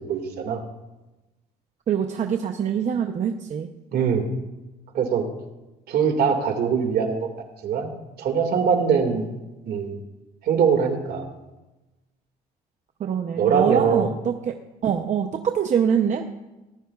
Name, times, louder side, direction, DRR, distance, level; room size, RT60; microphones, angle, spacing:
voice 1, 0.1-0.6 3.9-4.3 4.9-5.2 5.9-7.3 7.6-7.9 8.2-9.3 9.7-10.0 10.4-11.3 13.3-14.1, right 6 dB, 65° right, 4 dB, 2.1 m, -22 dB
voice 2, 1.9-3.7 13.0-14.5 14.8-16.3, right 8 dB, 45° right, 4 dB, 0.7 m, -24 dB
19.0 x 11.0 x 2.4 m, 1.1 s
cardioid pair, 110°, 17 cm